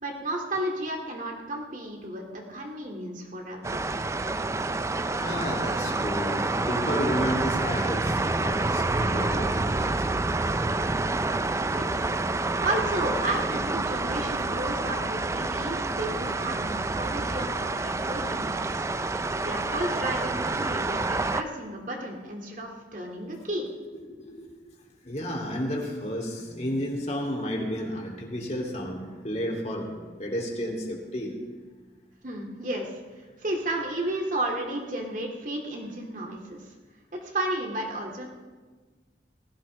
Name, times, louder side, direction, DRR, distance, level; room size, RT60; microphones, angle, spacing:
voice 1, 0.0-3.8 11.6-12.0 12.6-18.8 19.4-23.7 32.2-33.0 33.4-36.6 37.1-38.3, right 1 dB, 45° right, 1 dB, 2.2 m, -33 dB
sound 1, 3.6-21.4, right 2 dB, 15° right, 0.4 m, -28 dB
voice 2, 5.1-10.1 11.0-11.1 14.5-14.6 23.1-23.3 23.9-24.5 25.0-31.3, equal, 40° left, 0 dB, 2.7 m, -32 dB
19.5 x 15.5 x 3.3 m, 1.4 s
head